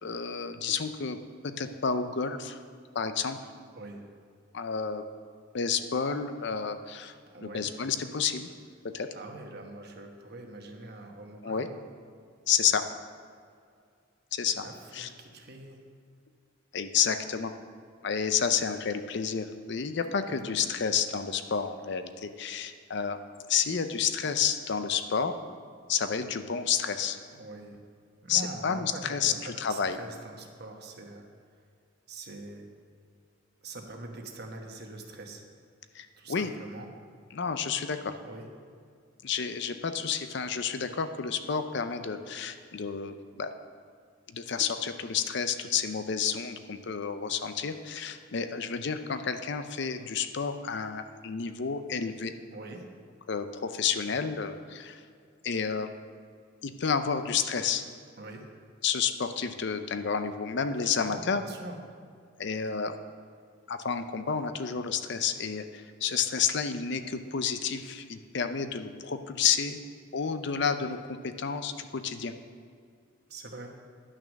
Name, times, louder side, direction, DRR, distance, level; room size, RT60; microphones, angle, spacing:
voice 1, 0.0-2.6 2.9-3.4 4.5-5.0 5.5-8.5 8.8-9.1 11.4-11.7 12.5-12.8 14.3-14.6 14.9-15.1 16.7-17.5 18.0-23.2 23.5-25.3 25.9-27.2 28.3-30.0 35.9-36.5 37.3-38.1 39.2-43.5 44.3-52.3 53.3-55.0 55.4-55.9 56.6-57.8 58.8-61.4 62.4-62.9 63.7-69.8 70.1-71.0 71.2-72.3, left 6 dB, 60° left, 9 dB, 0.6 m, -30 dB
voice 2, 7.3-7.7 9.1-11.8 14.5-15.8 20.4-20.6 27.3-27.8 28.2-31.3 32.1-32.7 33.6-35.4 36.2-36.9 38.2-38.5 52.5-52.9 58.2-58.4 60.8-61.8 73.3-73.7, right 2 dB, 55° right, 3 dB, 1.2 m, -43 dB
11.0 x 6.1 x 6.4 m, 2.2 s
head